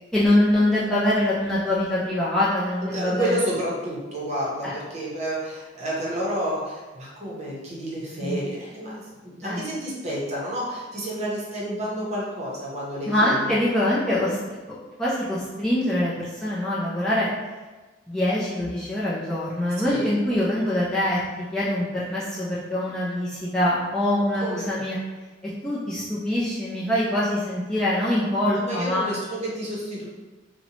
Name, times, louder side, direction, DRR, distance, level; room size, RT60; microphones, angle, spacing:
voice 1, 0.1-3.3 4.6-4.7 8.2-8.4 9.4-9.6 13.1-14.4 15.0-17.3 18.1-25.0 25.6-29.1, left 1 dB, 5° left, -9 dB, 0.3 m, -24 dB
voice 2, 2.8-13.5 19.8-20.2 24.3-24.8 28.5-30.1, right 1 dB, 35° right, -5 dB, 0.7 m, -30 dB
2.7 x 2.0 x 2.7 m, 1.3 s
head